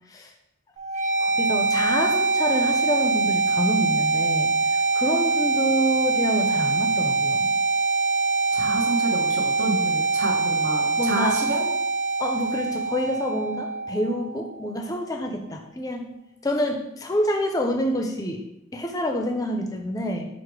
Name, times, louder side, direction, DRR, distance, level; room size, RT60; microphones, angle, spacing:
sound 1, 0.8-14.7, right 3 dB, 40° right, 0.7 m, -24 dB
voice 1, 1.2-7.5 11.0-11.4 12.2-16.1 16.4-18.4 18.7-20.3, equal, 20° left, 3 dB, 0.4 m, -27 dB
voice 2, 8.5-11.6, right 2 dB, 70° right, 0 dB, 0.9 m, -29 dB
4.8 x 2.0 x 4.6 m, 0.86 s
head